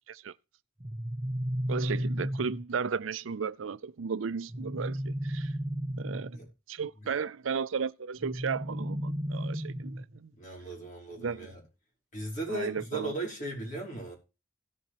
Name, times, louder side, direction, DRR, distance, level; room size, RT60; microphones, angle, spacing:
sound 1, 0.8-2.8 4.5-6.5 8.2-10.2, equal, 20° right, 0.7 m, -33 dB
voice 1, 1.7-5.5 6.0-6.4 6.7-10.3 11.2-11.5 12.5-13.1, right 5 dB, 85° right, 0.5 m, -34 dB
voice 2, 10.4-11.6 12.1-14.1, right 2 dB, 40° left, 4.6 m, -37 dB
17.0 x 7.0 x 3.0 m
head